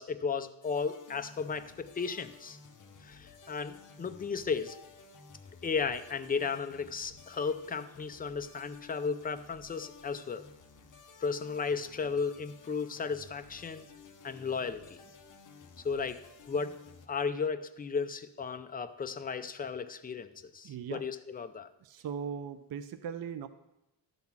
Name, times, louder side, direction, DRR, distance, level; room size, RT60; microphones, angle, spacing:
voice 1, 0.0-2.6 3.0-4.8 5.6-10.4 11.2-13.9 14.2-15.0 15.8-16.2 16.5-16.7 17.1-21.7, left 5 dB, 20° left, 9 dB, 0.4 m, -34 dB
sound 1, 0.6-17.1, left 4 dB, 40° left, 0.9 m, -54 dB
voice 2, 20.6-21.0 21.8-23.5, right 7 dB, 50° right, 10 dB, 0.5 m, -39 dB
12.0 x 4.0 x 7.1 m, 0.92 s
wide cardioid pair, 140°, 47 cm